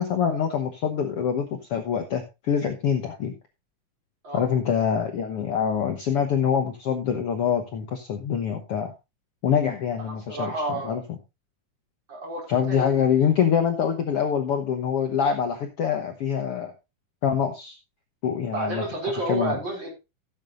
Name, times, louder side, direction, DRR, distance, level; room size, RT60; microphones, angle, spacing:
voice 1, 0.0-3.3 4.3-8.9 9.4-11.0 12.5-16.7 17.2-17.8 18.2-19.6, left 7 dB, 60° left, 5 dB, 1.7 m, -25 dB
voice 2, 10.0-11.0 12.1-13.3 18.5-19.9, right 2 dB, 35° right, -2 dB, 5.9 m, -31 dB
16.0 x 8.8 x 2.6 m, 0.25 s
omnidirectional pair, 3.7 m